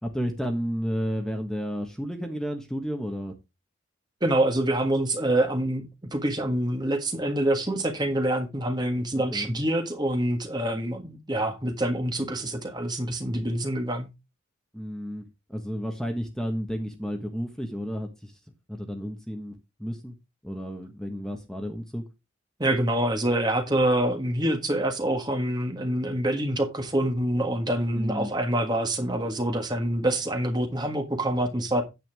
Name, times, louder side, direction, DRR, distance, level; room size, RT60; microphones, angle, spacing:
voice 1, 0.0-3.3 9.1-9.5 14.7-15.2 15.5-18.3 18.7-20.1 20.4-22.0 28.0-28.3, equal, 5° left, 1.4 m, -32 dB
voice 2, 4.2-5.8 6.1-14.1 22.6-31.8, right 1 dB, 20° right, 1.5 m, -26 dB
9.5 x 8.4 x 3.5 m
head